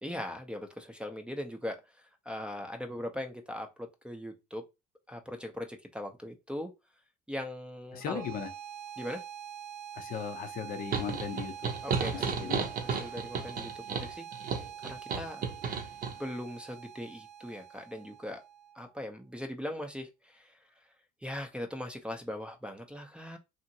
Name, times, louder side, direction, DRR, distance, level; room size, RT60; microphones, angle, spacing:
voice 1, 0.0-1.8 2.3-4.6 5.1-6.7 7.3-8.2 9.0-9.2 11.8-15.5 16.2-18.4 18.8-20.6 21.2-23.4, left 1 dB, 5° right, 0.5 m, -40 dB
voice 2, 7.9-8.5 10.0-11.5 12.1-12.6, left 7 dB, 45° left, 0.6 m, -37 dB
sound 1, 7.9-18.9, right 9 dB, 85° right, 0.6 m, -45 dB
sound 2, 10.9-16.1, right 5 dB, 45° right, 0.7 m, -33 dB
2.8 x 2.5 x 2.7 m
supercardioid pair, 90°, 20 cm